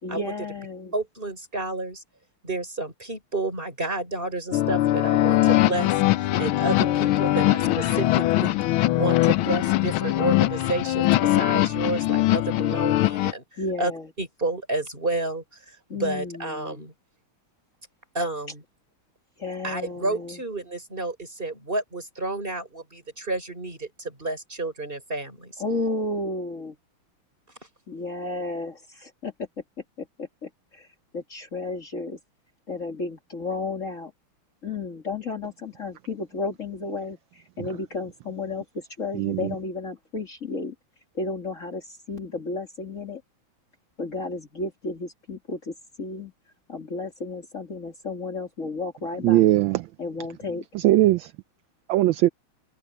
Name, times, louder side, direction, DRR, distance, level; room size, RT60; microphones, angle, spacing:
voice 1, 0.0-0.9 6.4-7.3 13.6-14.1 15.9-16.9 19.4-20.4 25.6-26.8 27.9-29.5 30.0-30.9 31.1-32.2 32.7-34.1 34.6-40.8 41.1-43.2 44.0-46.3 46.7-49.5 50.0-50.7, left 3 dB, 35° left, 2.4 m, -33 dB
voice 2, 0.9-2.0 2.4-8.6 8.9-13.9 14.2-16.9 18.1-18.6 19.6-25.6, right 2 dB, 25° right, 5.4 m, -30 dB
sound 1, 4.5-13.3, left 15 dB, 80° left, 1.5 m, -21 dB
voice 3, 39.1-39.5 49.2-49.9 50.7-51.3 51.9-52.3, right 15 dB, 75° right, 1.3 m, -20 dB
open air
omnidirectional pair, 2.3 m